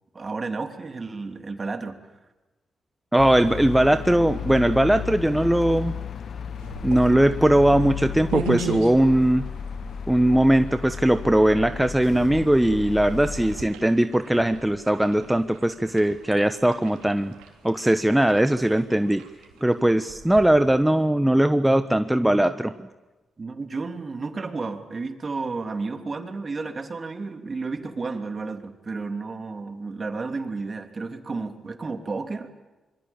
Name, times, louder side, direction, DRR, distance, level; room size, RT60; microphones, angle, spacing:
voice 1, 0.1-2.0 23.4-32.5, right 3 dB, 45° right, 5 dB, 3.1 m, -32 dB
voice 2, 3.1-5.9 6.8-9.5 10.1-17.3 17.6-19.2 19.6-22.7, right 1 dB, 10° right, 9 dB, 1.2 m, -20 dB
sound 1, 3.2-13.6, left 7 dB, 65° left, 1.3 m, -34 dB
sound 2, 6.5-21.0, right 6 dB, 90° right, 3.2 m, -39 dB
26.0 x 23.5 x 7.3 m, 1.1 s
hypercardioid pair, 45°, 0 cm